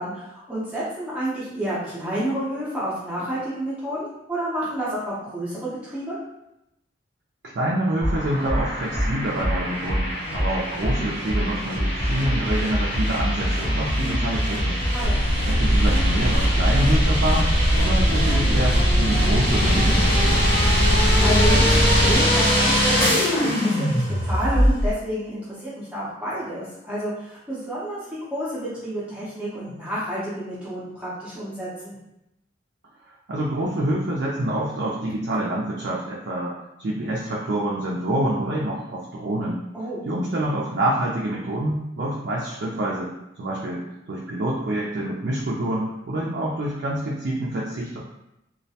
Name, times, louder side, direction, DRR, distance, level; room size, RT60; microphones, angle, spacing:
voice 1, 0.0-6.2 14.9-15.3 20.9-28.0 28.3-31.9 39.7-40.1, right 1 dB, 5° right, -9 dB, 0.6 m, -30 dB
voice 2, 7.4-14.8 15.4-20.6 33.3-39.6 40.0-43.1 43.4-48.0, right 1 dB, 60° right, -5 dB, 0.4 m, -27 dB
sound 1, 8.0-24.9, equal, 30° left, 0.8 m, -22 dB
sound 2, 15.0-22.2, equal, 50° left, 0.3 m, -22 dB
2.3 x 2.1 x 2.7 m, 0.85 s
head